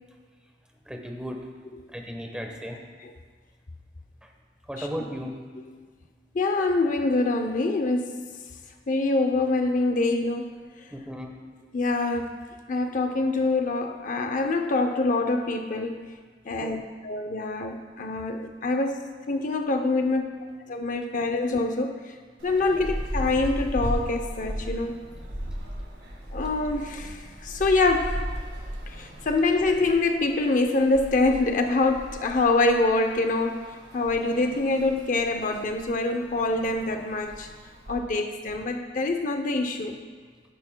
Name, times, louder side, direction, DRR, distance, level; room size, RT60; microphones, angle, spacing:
voice 1, 0.9-1.4 1.9-2.8 4.7-5.3 10.9-11.4 16.5-16.7, equal, 5° right, 2 dB, 1.0 m, -35 dB
voice 2, 6.3-8.2 8.9-10.6 11.7-12.3 12.7-16.0 16.5-19.0 19.3-20.3 20.7-21.9 22.4-25.0 26.3-28.2 29.0-33.6 33.9-37.5 37.9-40.0, left 2 dB, 50° left, 5 dB, 0.6 m, -25 dB
sound 1, 22.4-38.0, equal, 70° right, 1.9 m, -37 dB
16.0 x 10.5 x 2.2 m, 1.6 s
head